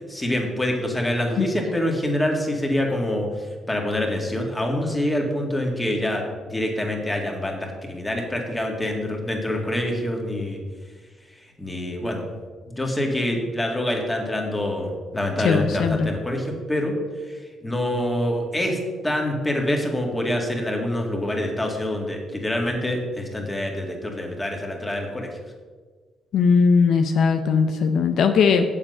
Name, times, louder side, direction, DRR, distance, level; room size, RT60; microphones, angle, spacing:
voice 1, 0.0-10.6 11.4-12.2 12.7-16.9 17.3-18.8 19.0-25.3, left 1 dB, 10° left, 1 dB, 2.0 m, -26 dB
voice 2, 15.4-16.1 26.3-28.6, left 5 dB, 70° left, 7 dB, 0.6 m, -19 dB
7.3 x 7.2 x 5.4 m, 1.4 s
cardioid pair, 90°, 0 cm